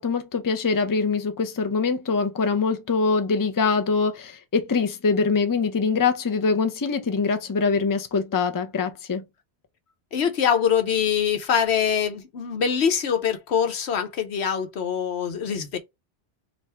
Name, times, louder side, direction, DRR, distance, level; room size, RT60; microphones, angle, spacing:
voice 1, 0.0-9.2, left 4 dB, 25° left, 0.5 m, -23 dB
voice 2, 10.1-15.8, left 7 dB, 90° left, 1.1 m, -24 dB
3.4 x 2.6 x 4.2 m
omnidirectional pair, 1.1 m